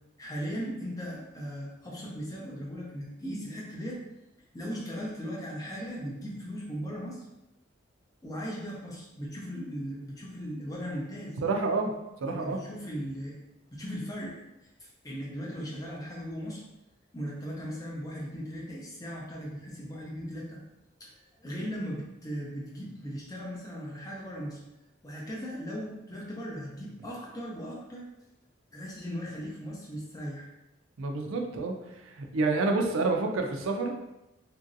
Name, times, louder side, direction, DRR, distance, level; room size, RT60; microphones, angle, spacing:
voice 1, 0.2-4.0 4.5-7.3 8.2-11.4 12.3-13.4 13.7-16.6 17.1-20.6 21.0-24.6 25.0-28.1 28.7-30.5, equal, 15° left, -4 dB, 0.5 m, -38 dB
voice 2, 11.4-11.9 12.2-12.6 31.0-31.8 32.0-34.0, right 3 dB, 80° right, 3 dB, 0.4 m, -28 dB
3.0 x 2.5 x 2.6 m, 0.91 s
head